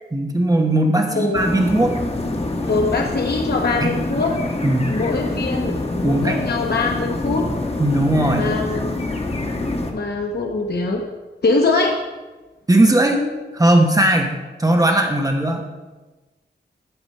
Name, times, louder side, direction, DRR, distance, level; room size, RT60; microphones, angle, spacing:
voice 1, 0.1-1.9 3.8-3.9 4.6-4.9 6.0-6.4 7.8-8.5 12.7-14.3 14.6-15.6, right 1 dB, 20° right, 2 dB, 1.1 m, -18 dB
voice 2, 1.1-1.4 2.6-4.3 4.9-7.5 8.4-8.8 9.9-11.0 11.4-12.0, left 3 dB, 60° left, 1 dB, 1.0 m, -22 dB
sound 1, 1.3-9.9, left 2 dB, 35° left, 1.2 m, -25 dB
13.5 x 4.9 x 5.6 m, 1.2 s
wide cardioid pair, 110°, 19 cm